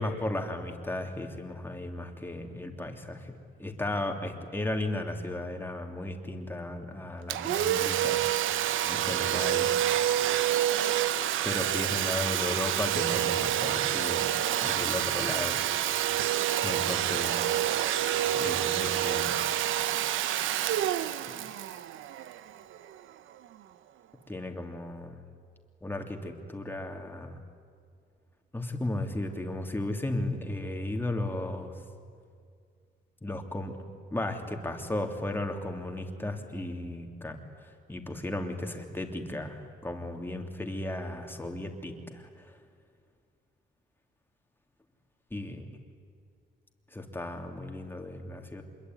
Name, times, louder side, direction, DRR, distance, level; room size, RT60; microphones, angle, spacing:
voice 1, 0.0-8.2 8.9-9.7 11.4-14.3 14.6-16.1 16.6-17.6 18.3-19.4 24.3-25.2 25.8-27.4 28.5-31.7 33.2-33.8 34.1-37.4 37.9-42.5 45.3-45.7 46.9-48.6, left 1 dB, 10° left, 3 dB, 3.1 m, -35 dB
Domestic sounds home sounds, 7.3-22.8, right 12 dB, 80° right, 1.0 m, -28 dB
26.5 x 22.0 x 9.5 m, 2.2 s
cardioid pair, 90°, 20 cm